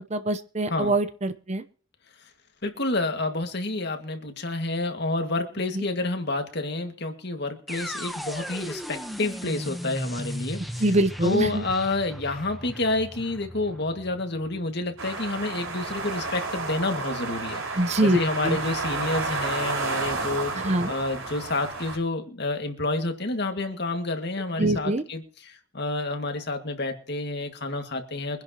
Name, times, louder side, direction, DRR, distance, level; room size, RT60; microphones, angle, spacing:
voice 1, 0.1-1.6 5.7-5.8 10.8-11.6 17.8-18.2 18.4-18.6 20.5-20.9 24.6-25.0, right 1 dB, 30° right, 11 dB, 0.8 m, -24 dB
voice 2, 2.6-10.6 11.2-17.6 18.0-28.4, left 2 dB, 50° left, 5 dB, 2.0 m, -29 dB
sound 1, 7.7-15.6, equal, ahead, 0.9 m, -37 dB
sound 2, 15.0-22.0, right 3 dB, 80° right, 5.0 m, -31 dB
24.0 x 10.5 x 3.0 m, 0.44 s
head